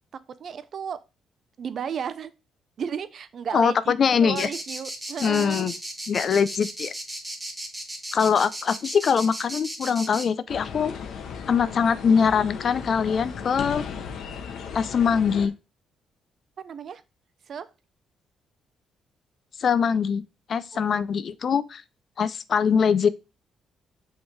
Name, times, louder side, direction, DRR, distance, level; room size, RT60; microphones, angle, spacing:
voice 1, 0.4-1.0 1.6-2.3 2.8-3.9 4.2-5.7 16.6-17.0 17.5-17.7 20.7-20.9, right 7 dB, 55° right, 0.6 m, -33 dB
voice 2, 3.5-4.5 5.2-5.7 6.1-6.9 8.1-10.9 11.5-13.8 14.7-15.5 19.6-20.2 20.5-21.8 22.2-23.1, left 6 dB, 50° left, 0.5 m, -22 dB
sound 1, 4.3-10.2, right 1 dB, 5° right, 1.8 m, -35 dB
sound 2, 10.5-15.5, left 6 dB, 70° left, 1.1 m, -36 dB
6.2 x 3.7 x 4.6 m
cardioid pair, 90°, 0 cm